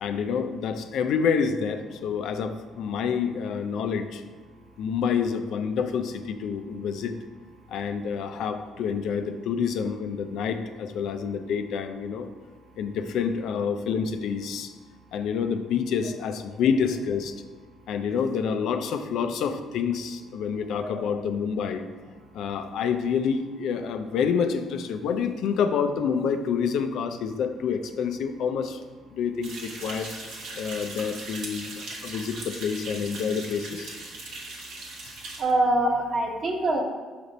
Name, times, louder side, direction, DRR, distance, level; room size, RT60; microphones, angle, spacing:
voice 1, 0.0-4.2 4.8-7.2 7.7-12.3 12.8-14.7 15.1-17.4 17.9-21.8 22.3-28.8 29.1-30.1 30.6-34.0, left 6 dB, 75° left, 8 dB, 0.4 m, -28 dB
sound 1, 29.4-35.4, right 2 dB, 80° right, 1.2 m, -39 dB
voice 2, 35.4-36.8, right 2 dB, 50° right, 2 dB, 1.1 m, -24 dB
5.2 x 5.0 x 4.1 m, 1.4 s
supercardioid pair, 65°, 0 cm